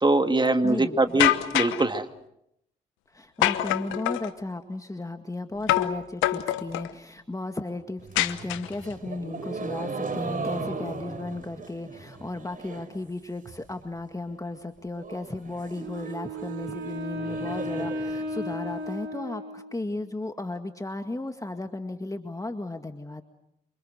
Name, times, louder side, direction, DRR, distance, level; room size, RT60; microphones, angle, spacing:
voice 1, 0.0-2.0, right 2 dB, 25° right, 8 dB, 2.4 m, -22 dB
voice 2, 0.6-1.2 3.1-23.2, left 2 dB, 15° left, 6 dB, 2.0 m, -35 dB
sound 1, 1.2-1.9 3.4-4.3 5.7-6.0 6.2-6.9 8.2-8.9, left 14 dB, 80° left, 1.1 m, -25 dB
sound 2, 8.0-13.0 13.3-13.8 14.1-14.2 14.5-14.6 14.9-18.9, right 4 dB, 45° right, 4.0 m, -37 dB
Wind instrument woodwind instrument, 15.7-20.0, equal, 65° right, 5.9 m, -35 dB
28.5 x 25.5 x 6.6 m, 0.79 s
hypercardioid pair, 40°, 20 cm